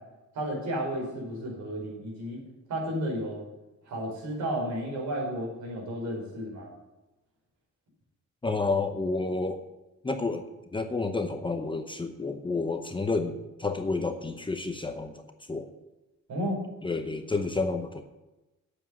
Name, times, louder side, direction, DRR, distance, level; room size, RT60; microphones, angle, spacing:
voice 1, 0.3-2.4 2.7-3.4 3.8-6.7 16.3-16.6, equal, 65° right, -1 dB, 5.0 m, -32 dB
voice 2, 8.4-9.6 10.0-10.4 10.7-15.2 15.5-15.7 16.8-18.0, left 3 dB, 15° left, 6 dB, 0.8 m, -30 dB
8.6 x 7.3 x 8.6 m, 1.0 s
cardioid pair, 130°, 31 cm